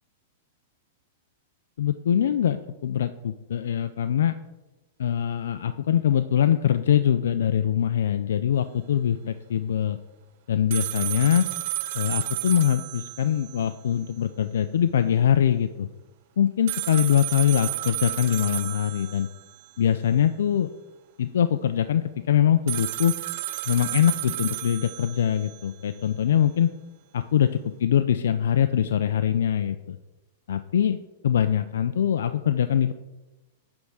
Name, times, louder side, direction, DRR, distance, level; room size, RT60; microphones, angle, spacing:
voice 1, 1.8-4.4 5.0-10.0 10.5-11.5 11.9-15.9 16.4-19.3 19.8-20.7 21.2-23.2 23.7-26.7 27.1-30.0 30.5-31.0 31.2-32.9, left 9 dB, 85° left, 9 dB, 0.4 m, -23 dB
sound 1, 10.7-13.8 14.0-14.1 16.7-19.7 22.7-25.7, right 16 dB, 55° right, 0.4 m, -32 dB
9.7 x 3.5 x 6.2 m, 1.1 s
supercardioid pair, 145°, 0 cm